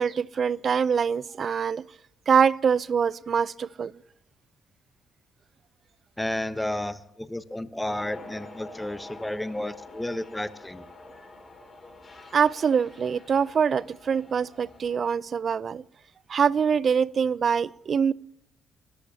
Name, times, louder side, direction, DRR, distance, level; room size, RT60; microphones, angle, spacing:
voice 1, 0.0-1.9 2.3-3.9 12.3-15.8 16.3-18.1, right 6 dB, 50° right, 0.5 m, -24 dB
voice 2, 6.2-10.9, left 1 dB, 10° left, 1.0 m, -32 dB
sound 1, 7.9-15.0, left 2 dB, 35° left, 4.8 m, -47 dB
23.5 x 13.5 x 2.8 m
cardioid pair, 90°, 0 cm